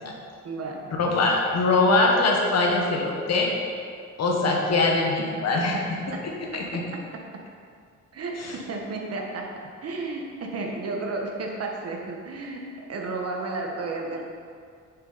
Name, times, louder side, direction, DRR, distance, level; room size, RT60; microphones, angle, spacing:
voice 1, 0.4-0.9 1.6-1.7 5.5-6.3 6.5-7.5 8.1-12.6 12.9-14.2, right 3 dB, 55° right, 0 dB, 1.3 m, -33 dB
voice 2, 1.0-3.5 4.2-5.8 6.5-6.8 8.4-8.5, left 3 dB, 60° left, 0 dB, 1.5 m, -22 dB
7.4 x 6.9 x 4.2 m, 2.2 s
cardioid pair, 90°, 30 cm